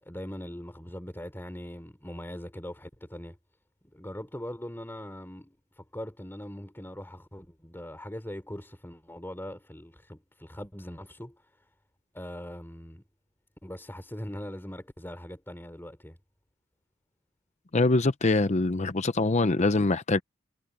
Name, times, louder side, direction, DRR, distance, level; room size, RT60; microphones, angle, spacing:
voice 1, 0.0-3.4 3.8-11.7 12.1-13.0 13.6-16.2, equal, 10° left, 3.5 m, -41 dB
voice 2, 17.7-20.2, left 2 dB, 35° left, 0.7 m, -24 dB
head